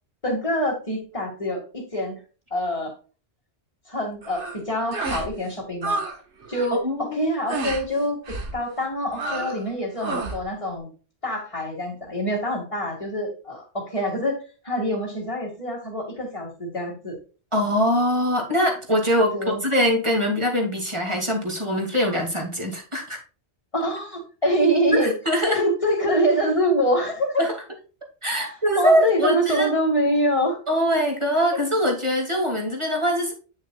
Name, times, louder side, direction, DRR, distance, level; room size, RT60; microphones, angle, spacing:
voice 1, 0.2-2.2 2.5-3.0 3.9-6.0 6.5-10.9 11.2-14.4 14.6-17.1 19.3-19.6 23.7-25.1 25.5-27.5 28.3-30.6, equal, 30° left, -4 dB, 2.1 m, -25 dB
sound 1, 4.2-4.6 4.9-5.3 5.6-6.2 6.4-6.8 7.5-7.8 8.3-8.5 9.1-9.6 10.0-10.4, right 3 dB, 90° right, 1.7 m, -30 dB
voice 2, 6.8-7.2 17.5-23.2 24.9-25.6 27.4-27.5 28.2-29.7 30.7-33.3, equal, 25° right, 1 dB, 2.3 m, -23 dB
9.4 x 6.4 x 2.3 m, 0.35 s
omnidirectional pair, 1.1 m